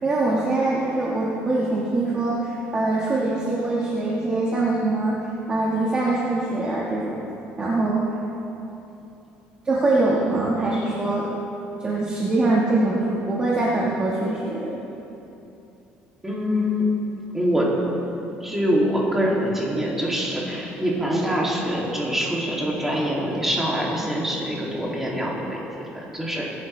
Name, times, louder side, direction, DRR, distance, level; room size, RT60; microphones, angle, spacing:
voice 1, 0.0-5.2 5.5-7.2 7.6-8.1 9.6-11.3 11.8-14.8, right 2 dB, 25° right, -5 dB, 1.4 m, -23 dB
voice 2, 16.2-16.9 17.3-17.7 18.4-26.5, equal, 5° right, -4 dB, 2.4 m, -24 dB
21.5 x 10.5 x 3.2 m, 2.9 s
cardioid pair, 160°, 4 cm